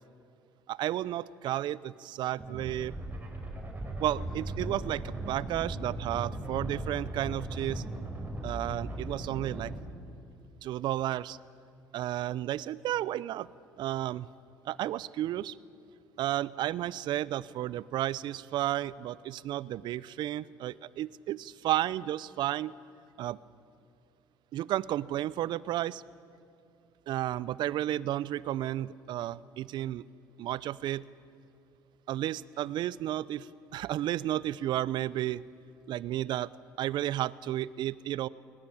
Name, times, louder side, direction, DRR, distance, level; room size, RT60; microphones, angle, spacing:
voice 1, 0.7-2.9 4.0-7.8 8.4-9.7 10.6-11.4 11.9-13.5 13.8-14.3 14.6-15.6 16.2-22.7 23.2-23.4 24.5-26.0 27.1-30.0 30.4-31.0 32.1-35.4 35.9-36.5 36.8-38.3, right 13 dB, 60° right, 20 dB, 0.6 m, -32 dB
sound 1, 2.4-9.7, right 1 dB, 20° right, 5.7 m, -38 dB
21.0 x 20.0 x 8.7 m, 2.4 s
hypercardioid pair, 65°, 9 cm